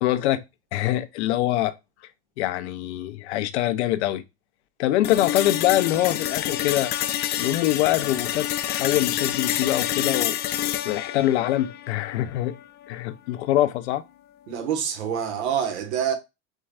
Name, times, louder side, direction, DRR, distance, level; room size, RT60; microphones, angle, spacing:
voice 1, 0.0-0.4 0.7-1.7 2.4-4.2 4.8-6.9 7.4-10.4 10.8-12.6 12.9-14.0, left 14 dB, 70° left, 0.7 m, -24 dB
sound 1, 5.0-13.1, left 12 dB, 30° left, 0.4 m, -28 dB
voice 2, 14.5-16.1, right 8 dB, 75° right, 1.3 m, -26 dB
4.6 x 3.1 x 2.3 m
supercardioid pair, 120°, 34 cm